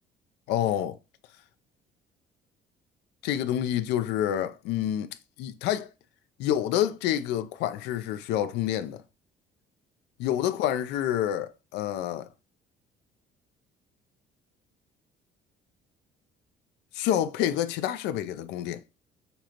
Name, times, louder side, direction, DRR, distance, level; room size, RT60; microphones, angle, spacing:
voice 1, 0.5-1.0 3.2-5.1 5.4-5.9 6.4-9.0 10.2-12.3 16.9-18.8, left 11 dB, 90° left, 0.5 m, -28 dB
6.7 x 2.5 x 2.9 m
cardioid pair, 110°, 17 cm